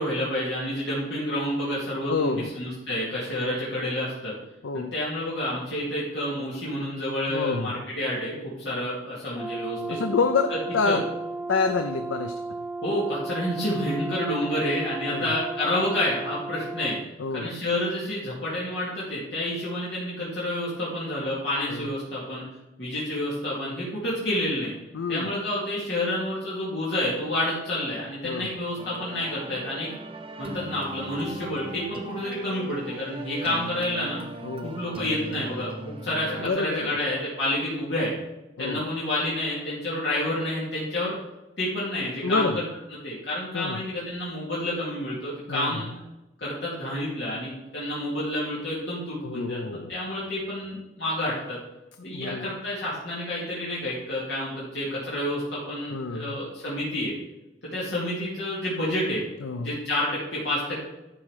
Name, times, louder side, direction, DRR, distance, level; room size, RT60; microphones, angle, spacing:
voice 1, 0.0-4.3 4.7-10.0 10.8-11.0 12.8-17.0 17.3-22.4 22.8-24.7 25.1-29.9 30.4-34.2 34.6-38.1 38.6-41.1 41.6-42.6 43.0-45.9 46.4-51.6 52.0-57.1 57.6-59.2 59.6-60.8, left 1 dB, 60° left, -8 dB, 2.6 m, -29 dB
voice 2, 2.1-2.5 4.6-4.9 7.3-7.8 9.9-11.0 11.5-12.3 15.1-15.4 17.2-17.5 21.7-21.9 24.9-25.3 28.2-28.5 34.4-34.8 36.4-37.0 38.6-38.8 42.2-42.6 43.5-43.8 45.5-45.8 49.2-50.0 52.1-52.5 55.9-56.4 59.4-59.8, left 4 dB, 85° left, 7 dB, 0.6 m, -28 dB
Brass instrument, 9.3-17.1, right 3 dB, ahead, 0.4 m, -34 dB
sound 1, 28.8-36.5, right 1 dB, 25° right, 0.7 m, -39 dB
11.5 x 4.8 x 4.9 m, 0.98 s
head